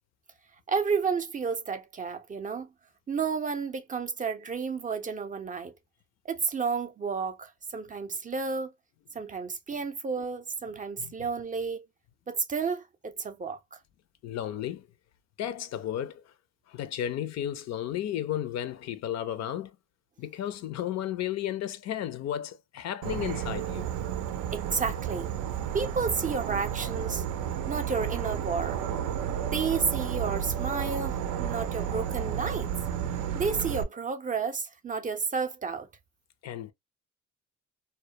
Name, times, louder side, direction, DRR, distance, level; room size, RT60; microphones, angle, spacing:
voice 1, 0.7-2.7 3.1-5.7 6.3-8.7 9.1-11.9 12.3-13.8 24.5-25.3 25.7-27.2 27.7-28.8 29.5-32.7 33.3-35.9, right 5 dB, 25° right, 0.4 m, -31 dB
voice 2, 14.2-14.9 15.4-16.3 16.7-19.7 20.2-23.9 36.4-36.7, left 11 dB, 60° left, 0.4 m, -33 dB
Insect / Frog, 23.0-33.8, right 9 dB, 85° right, 0.5 m, -32 dB
2.2 x 2.1 x 2.7 m
cardioid pair, 90°, 30 cm